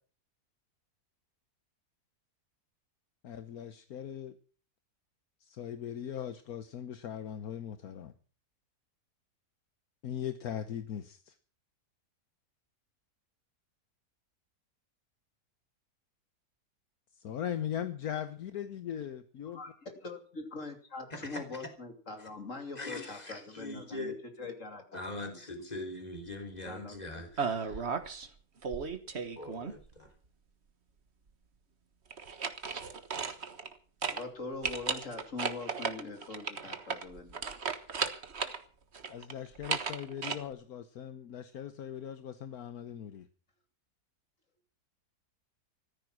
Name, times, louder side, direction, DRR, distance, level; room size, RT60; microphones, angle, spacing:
voice 1, 3.2-4.4 5.4-8.1 10.0-11.3 17.1-19.6 39.1-43.3, left 9 dB, 70° left, 1.4 m, -39 dB
voice 2, 19.5-24.8 25.2-25.3 26.6-27.2 34.0-37.4, left 3 dB, 50° left, 3.1 m, -43 dB
voice 3, 21.1-21.7 22.2-22.3 22.8-24.2 24.9-27.9 29.4-30.1, left 2 dB, 25° left, 3.6 m, -42 dB
sound 1, 27.4-28.3 28.6-29.9 32.1-33.8 34.0-34.2 34.6-38.6 38.9-40.4, right 5 dB, 45° right, 1.6 m, -35 dB
14.5 x 14.0 x 6.2 m
omnidirectional pair, 1.7 m